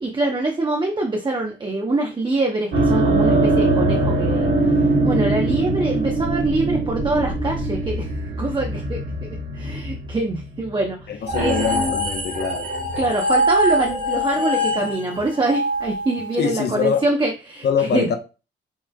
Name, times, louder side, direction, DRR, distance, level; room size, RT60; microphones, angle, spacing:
voice 1, 0.0-4.5 5.0-8.1 8.4-11.5 13.0-18.1, right 2 dB, 25° right, 0.8 m, -24 dB
sound 1, 2.7-11.1, right 2 dB, 75° right, 1.7 m, -21 dB
voice 2, 11.1-12.7 16.4-17.0 17.6-18.2, left 7 dB, 55° left, 0.9 m, -23 dB
sound 2, 11.3-16.7, equal, 45° right, 1.5 m, -23 dB
5.6 x 3.1 x 2.2 m
cardioid pair, 90°, 20 cm